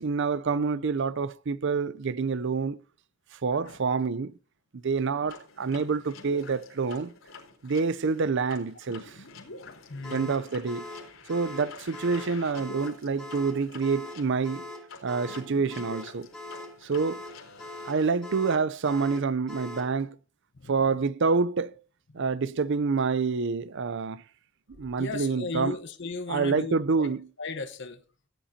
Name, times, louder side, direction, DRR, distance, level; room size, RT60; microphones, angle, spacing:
voice 1, 0.0-2.8 3.4-4.3 4.8-7.1 7.6-9.1 10.1-10.9 11.3-14.6 15.0-16.3 16.8-17.2 17.9-20.1 20.7-21.8 22.1-24.2 24.8-25.8 26.3-27.2, right 4 dB, 60° right, 0.6 m, -27 dB
sound 1, 5.3-18.1, left 3 dB, 85° left, 4.0 m, -48 dB
voice 2, 9.6-10.3 20.5-21.0 22.1-22.2 24.7-27.1 27.4-28.0, left 3 dB, 60° left, 1.1 m, -37 dB
sound 2, 10.0-20.0, left 2 dB, 5° left, 2.2 m, -42 dB
17.5 x 10.0 x 2.8 m
head